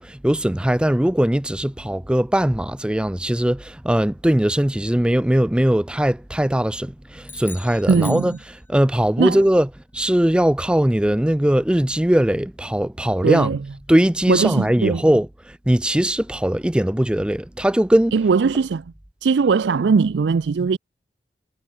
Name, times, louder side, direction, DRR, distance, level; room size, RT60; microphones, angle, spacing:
voice 1, 0.0-13.6 13.9-15.3 15.7-18.2, right 1 dB, 5° right, 0.4 m, -20 dB
sound 1, 7.2-9.0, left 4 dB, 10° left, 5.5 m, -40 dB
voice 2, 7.9-8.4 9.2-9.4 13.2-13.6 14.3-15.0 18.1-18.8 19.2-20.8, right 5 dB, 80° right, 0.4 m, -19 dB
head